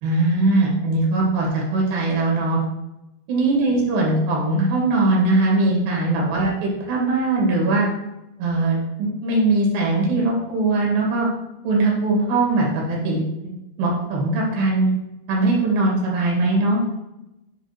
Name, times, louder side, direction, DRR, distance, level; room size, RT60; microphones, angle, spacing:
voice 1, 0.0-2.6 3.3-7.9 8.4-11.3 11.6-13.5 13.8-14.9 15.3-16.8, right 2 dB, 75° right, -2 dB, 4.0 m, -20 dB
10.0 x 3.4 x 5.8 m, 0.92 s
omnidirectional pair, 4.3 m